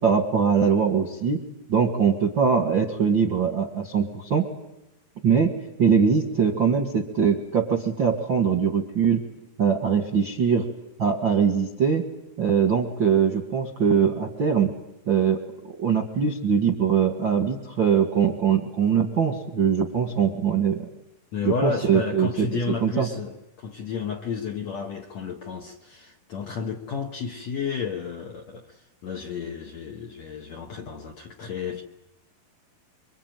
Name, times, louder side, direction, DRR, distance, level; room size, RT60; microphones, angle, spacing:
voice 1, 0.0-1.4 1.7-4.4 5.2-5.5 5.8-9.2 9.6-10.7 11.0-12.0 12.4-14.7 15.1-15.4 15.8-20.9 21.4-22.5 22.8-23.1, right 6 dB, 50° right, 1.5 m, -22 dB
voice 2, 21.3-31.8, left 5 dB, 60° left, 1.9 m, -32 dB
26.5 x 23.5 x 9.1 m
omnidirectional pair, 4.7 m